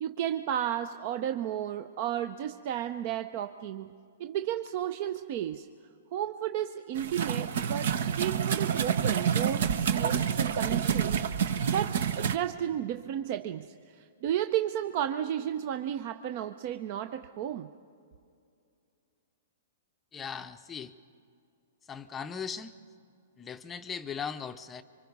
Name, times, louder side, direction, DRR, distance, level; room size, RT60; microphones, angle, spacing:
voice 1, 0.0-3.9 4.2-5.7 6.1-11.2 11.6-17.7, right 10 dB, 45° right, 10 dB, 0.6 m, -33 dB
sound 1, 7.0-12.4, right 8 dB, 65° right, 1.0 m, -28 dB
voice 2, 20.1-20.9 21.9-22.7 23.4-24.8, left 6 dB, 15° left, 8 dB, 0.6 m, -38 dB
27.5 x 25.0 x 5.4 m, 2.5 s
hypercardioid pair, 140°, 0 cm